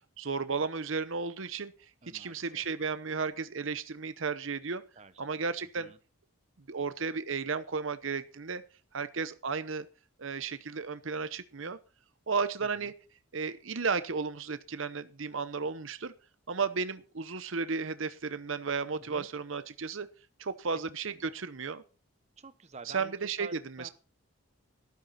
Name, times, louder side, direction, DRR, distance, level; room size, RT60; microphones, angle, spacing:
voice 1, 0.2-1.7 2.1-4.8 5.2-5.9 6.7-8.6 8.9-9.9 10.2-11.8 12.3-12.9 13.3-16.1 16.5-20.1 20.4-21.8 22.9-23.5 23.8-23.9, right 5 dB, 70° right, 13 dB, 0.8 m, -34 dB
voice 2, 2.0-2.7 5.0-5.4 5.8-6.0 12.6-12.9 19.0-19.3 21.0-21.3 22.4-23.9, right 3 dB, 30° right, 12 dB, 1.0 m, -50 dB
13.0 x 12.5 x 4.2 m, 0.35 s
head